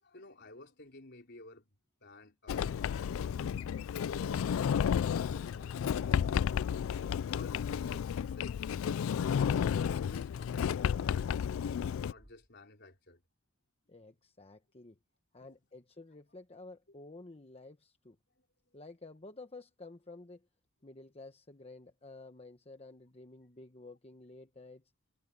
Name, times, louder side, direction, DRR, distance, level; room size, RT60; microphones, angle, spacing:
voice 1, 0.0-1.7 2.0-3.5 4.0-6.8 7.3-11.2 12.0-13.2 15.4-15.5 18.4-18.5, left 2 dB, 55° left, 4.3 m, -54 dB
Sliding door, 2.5-12.1, left 8 dB, 80° left, 0.3 m, -32 dB
Thump thud, 12.1-12.7, equal, 15° right, 4.0 m, -64 dB
voice 2, 13.9-15.0 15.3-18.2 18.7-20.5 20.8-24.8, left 2 dB, 30° left, 1.1 m, -51 dB
head